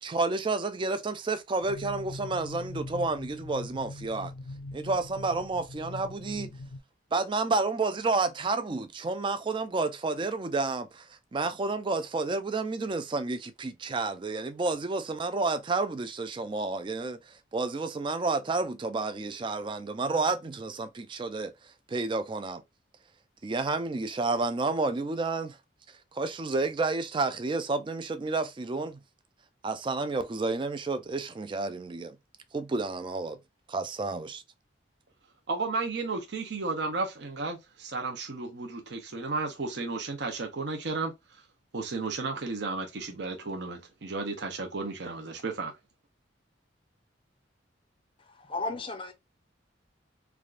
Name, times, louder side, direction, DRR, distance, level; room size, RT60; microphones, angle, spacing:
voice 1, 0.0-4.3 4.7-6.5 7.1-22.6 23.4-25.6 25.9-29.0 29.6-32.2 32.5-33.4 33.7-34.4, right 3 dB, 25° right, 0.3 m, -30 dB
sound 1, 1.6-6.8, left 2 dB, 85° left, 0.5 m, -42 dB
voice 2, 35.5-41.4 41.7-45.7, right 3 dB, 60° right, 0.6 m, -33 dB
voice 3, 48.2-49.1, left 3 dB, 25° left, 0.5 m, -35 dB
3.3 x 2.5 x 2.3 m
head